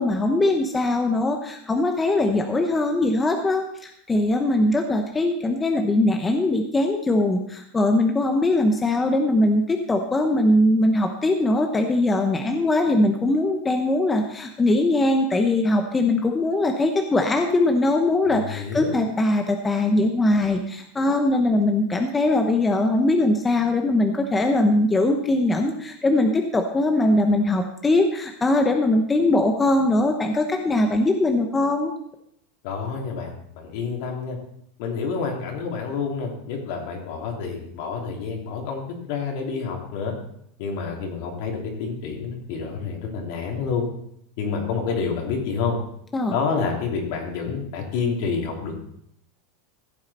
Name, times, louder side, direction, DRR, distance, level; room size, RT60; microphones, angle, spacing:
voice 1, 0.0-31.9 46.1-46.4, left 2 dB, 10° left, 4 dB, 0.8 m, -21 dB
voice 2, 18.3-19.1 32.6-34.4 34.8-38.8 39.1-40.1 40.6-43.9 44.4-45.8 46.3-48.8, left 5 dB, 60° left, 1 dB, 3.0 m, -28 dB
15.0 x 8.5 x 4.2 m, 0.71 s
supercardioid pair, 160°, 0 cm